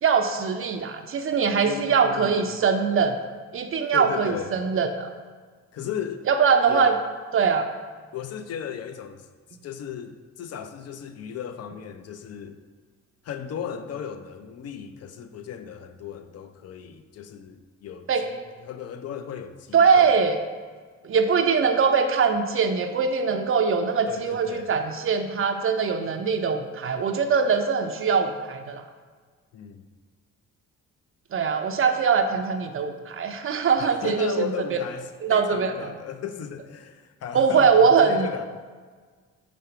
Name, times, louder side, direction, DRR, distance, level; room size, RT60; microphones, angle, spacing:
voice 1, 0.0-3.2 3.5-5.1 6.3-7.0 7.3-7.7 18.1-18.3 19.7-20.4 21.0-28.8 31.3-34.8 35.2-35.9 37.3-38.3, right 5 dB, 45° right, 5 dB, 0.5 m, -22 dB
voice 2, 1.6-2.4 3.9-4.5 5.7-6.2 6.7-6.9 8.1-9.3 9.6-12.6 13.2-20.2 24.1-24.7 29.5-29.9 33.8-38.5, left 8 dB, 55° left, 9 dB, 0.6 m, -35 dB
5.2 x 3.6 x 5.7 m, 1.5 s
cardioid pair, 90°, 30 cm